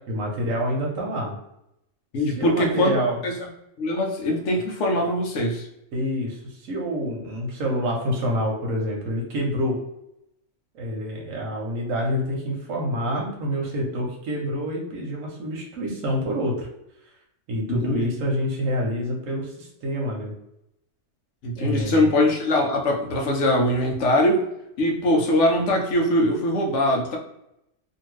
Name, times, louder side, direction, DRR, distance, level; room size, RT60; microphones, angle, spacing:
voice 1, 0.1-1.3 2.3-3.2 5.9-9.8 10.7-16.7 17.5-20.3 21.5-22.1, equal, 90° right, -1 dB, 1.1 m, -27 dB
voice 2, 2.1-2.9 3.2-3.3 3.8-5.7 17.7-18.1 21.4-24.4 24.8-27.2, left 1 dB, 70° left, 1 dB, 1.0 m, -22 dB
2.6 x 2.6 x 3.1 m, 0.82 s
omnidirectional pair, 1.3 m